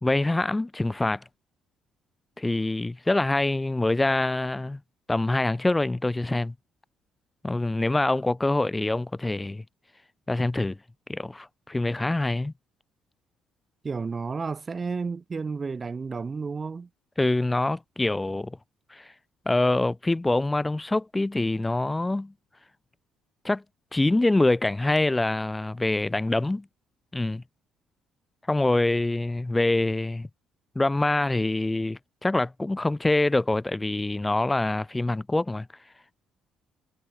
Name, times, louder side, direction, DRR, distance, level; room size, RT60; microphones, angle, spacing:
voice 1, 0.0-1.2 2.4-4.8 5.1-6.5 7.4-9.6 10.3-10.8 11.1-12.5 17.2-18.6 18.9-19.1 19.5-22.3 23.4-23.6 23.9-26.7 27.1-27.4 28.5-30.3 30.8-35.7, left 2 dB, 15° left, 0.6 m, -25 dB
voice 2, 13.8-16.9, right 4 dB, 35° right, 0.6 m, -32 dB
figure-of-eight pair, 45°, 0 cm